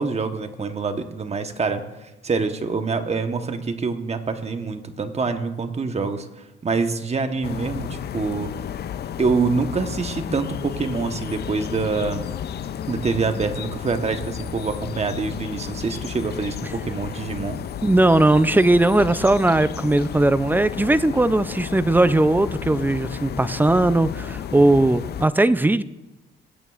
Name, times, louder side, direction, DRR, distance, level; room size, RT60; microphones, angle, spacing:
voice 1, 0.0-1.8 2.2-6.3 6.6-8.5 9.2-12.3 12.9-17.6, right 4 dB, 35° right, 1.2 m, -25 dB
sound 1, 7.4-25.3, left 9 dB, 55° left, 0.6 m, -32 dB
voice 2, 17.8-25.8, right 2 dB, 10° right, 0.5 m, -18 dB
20.5 x 9.3 x 2.5 m
cardioid pair, 90°, 20 cm